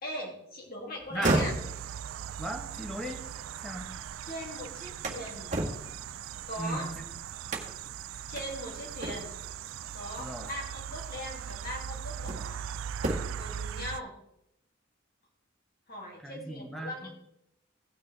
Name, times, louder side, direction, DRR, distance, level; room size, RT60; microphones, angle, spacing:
voice 1, 0.0-1.5 4.2-5.6 6.5-6.9 8.3-9.4 9.9-12.6 13.3-14.1 15.9-17.1, left 1 dB, 50° left, 0 dB, 2.6 m, -40 dB
sound 1, 1.0-4.1 4.5-6.9 7.5-7.9 8.4-8.5 9.0-9.5 10.7-10.9 11.5-12.6 12.9-13.5, right 2 dB, 40° right, 1.6 m, -34 dB
voice 2, 1.1-1.4 2.4-3.2 3.6-3.9 6.6-7.1 10.2-10.5 16.2-17.1, right 1 dB, ahead, 2 dB, 1.3 m, -37 dB
sound 2, 1.2-14.0, right 9 dB, 85° right, 0.4 m, -40 dB
17.0 x 6.4 x 3.4 m, 0.80 s
head